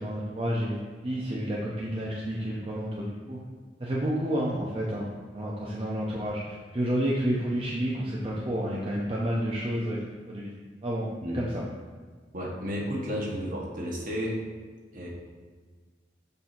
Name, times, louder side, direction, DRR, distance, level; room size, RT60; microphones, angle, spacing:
voice 1, 0.0-3.4 3.8-5.1 5.3-10.0 10.3-10.5 10.8-11.1 11.3-11.6, equal, 30° right, -4 dB, 0.7 m, -30 dB
voice 2, 12.3-14.5 14.9-15.1, equal, 50° right, -2 dB, 1.2 m, -32 dB
6.9 x 2.8 x 5.8 m, 1.5 s
head